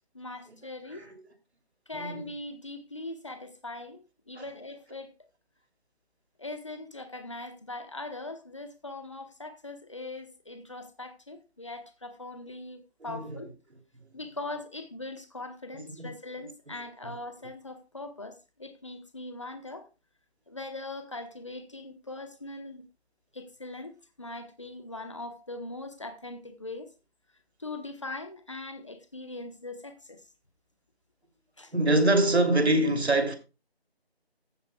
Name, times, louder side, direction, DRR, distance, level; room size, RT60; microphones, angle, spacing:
voice 1, 0.1-1.1 1.9-5.2 6.4-13.5 14.1-19.9 20.5-22.8 23.3-26.9 27.6-30.2 31.6-31.7, left 2 dB, 30° left, 1.1 m, -41 dB
voice 2, 1.9-2.3 4.4-4.5 13.0-13.4 15.7-16.1 31.7-33.4, right 1 dB, 85° right, 3.0 m, -24 dB
15.0 x 8.3 x 2.3 m
figure-of-eight pair, 175°, 32 cm